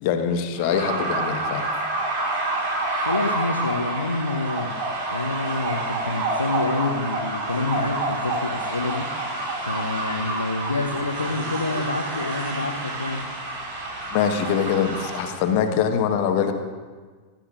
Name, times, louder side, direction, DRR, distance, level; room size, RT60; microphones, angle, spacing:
voice 1, 0.0-1.7 14.1-16.5, left 7 dB, 45° left, 6 dB, 1.3 m, -23 dB
sound 1, 0.6-15.4, right 2 dB, 45° right, 4.8 m, -28 dB
voice 2, 3.0-4.7 5.1-9.1 9.6-13.3, left 3 dB, 80° left, 1 dB, 0.8 m, -27 dB
24.0 x 11.5 x 2.5 m, 1.5 s
figure-of-eight pair, 90°, 0 cm